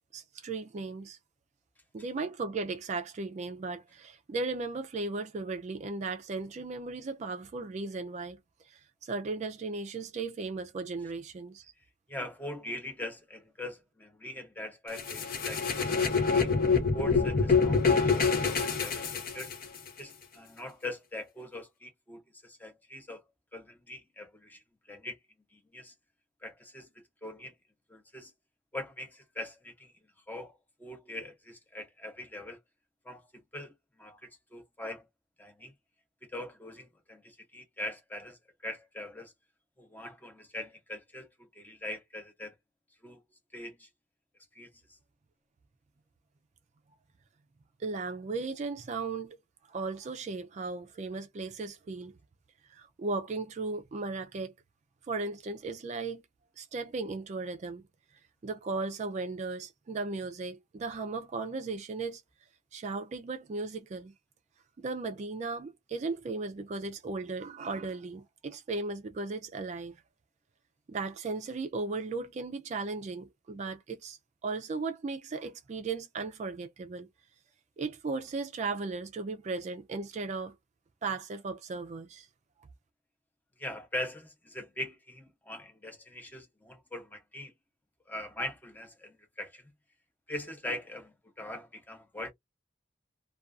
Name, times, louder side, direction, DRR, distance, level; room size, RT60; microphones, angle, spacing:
voice 1, 0.1-1.2 1.9-8.4 8.7-11.7 47.8-49.4 49.7-52.1 52.7-54.5 55.1-56.2 56.6-57.9 58.4-62.2 62.7-64.1 64.8-69.9 70.9-77.1 77.8-80.6 81.0-82.3, right 3 dB, 40° right, 0.3 m, -36 dB
voice 2, 12.1-16.5 16.9-19.5 20.0-23.2 23.5-25.2 25.5-25.9 26.4-27.5 27.9-28.3 28.7-29.9 30.3-32.6 33.0-33.2 33.5-33.7 34.0-35.1 35.4-35.7 36.3-39.3 39.8-41.3 41.5-42.5 43.0-43.2 43.5-43.9 44.5-45.0 83.6-87.5 88.1-89.7 90.3-92.3, left 1 dB, 10° left, 0.6 m, -42 dB
sound 1, 15.0-19.9, left 5 dB, 50° left, 0.7 m, -26 dB
2.4 x 2.2 x 2.4 m
head